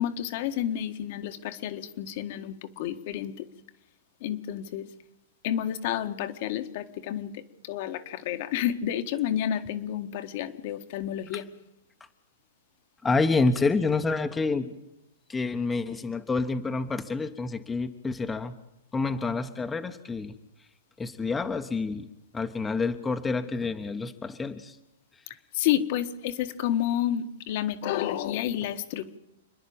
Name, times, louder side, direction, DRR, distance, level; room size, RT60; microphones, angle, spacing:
voice 1, 0.0-3.5 4.2-4.9 5.4-11.4 25.5-29.2, left 11 dB, 55° left, 9 dB, 1.7 m, -30 dB
voice 2, 13.0-14.7 15.3-18.5 18.9-20.3 21.0-22.1 22.3-24.8, left 3 dB, 10° left, 6 dB, 1.2 m, -28 dB
28.5 x 10.5 x 8.8 m, 0.90 s
hypercardioid pair, 130°, 0 cm